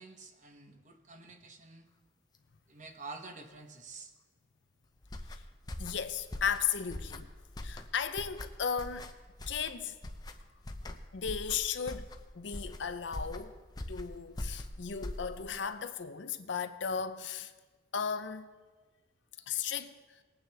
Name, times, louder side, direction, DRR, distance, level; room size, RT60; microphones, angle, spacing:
voice 1, 0.0-1.9 2.7-4.1 18.7-18.8, right 3 dB, 40° right, 1.0 m, -48 dB
sound 1, 5.0-15.6, left 1 dB, 20° left, 0.6 m, -43 dB
voice 2, 5.8-7.3 7.6-9.1 9.5-10.0 11.1-12.1 12.3-13.6 13.9-17.5 17.9-18.5 19.5-20.0, left 7 dB, 70° left, 0.6 m, -35 dB
20.5 x 9.0 x 3.4 m
head